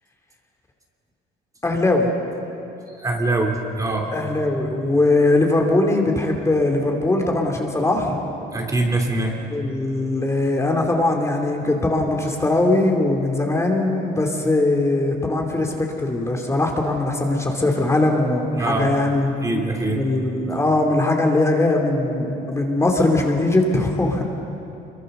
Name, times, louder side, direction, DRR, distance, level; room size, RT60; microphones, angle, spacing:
voice 1, 1.6-2.1 4.1-8.2 9.5-19.3 20.0-24.2, left 2 dB, 15° left, 1 dB, 2.9 m, -20 dB
voice 2, 3.0-4.1 8.5-9.4 18.6-19.0 19.4-20.0, right 2 dB, 20° right, 2 dB, 3.0 m, -23 dB
26.0 x 23.0 x 6.8 m, 2.9 s
cardioid pair, 110°, 17 cm